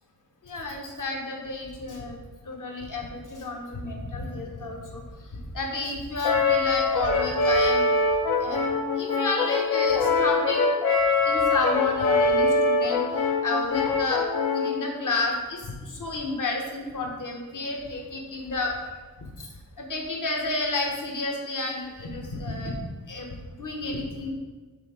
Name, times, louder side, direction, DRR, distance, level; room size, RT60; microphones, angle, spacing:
voice 1, 0.4-2.2 2.5-5.0 5.5-7.9 8.4-8.7 9.0-10.7 11.2-14.2 14.5-18.8 19.4-19.5 19.8-22.8 23.1-23.3 23.6-24.3, left 2 dB, 60° left, 1 dB, 1.2 m, -31 dB
Brass instrument, 6.2-14.8, left 3 dB, 80° left, 0.8 m, -23 dB
6.7 x 3.6 x 5.1 m, 1.3 s
wide cardioid pair, 115°, 36 cm